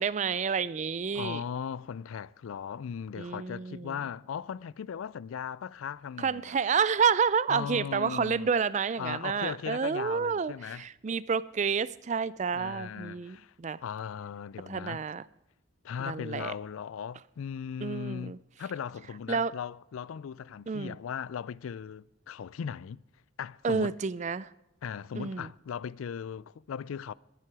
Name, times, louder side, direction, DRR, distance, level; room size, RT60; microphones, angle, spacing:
voice 1, 0.0-1.4 3.2-3.9 6.2-13.8 14.7-15.2 16.1-16.5 17.8-18.4 19.3-19.5 20.7-21.0 23.6-24.5 25.2-25.5, right 6 dB, 35° right, 0.3 m, -29 dB
voice 2, 1.1-6.6 7.5-8.5 9.0-10.9 12.5-13.5 13.8-15.0 15.8-23.0 23.4-24.0 24.8-27.1, left 7 dB, 85° left, 0.4 m, -38 dB
21.0 x 7.6 x 4.8 m
head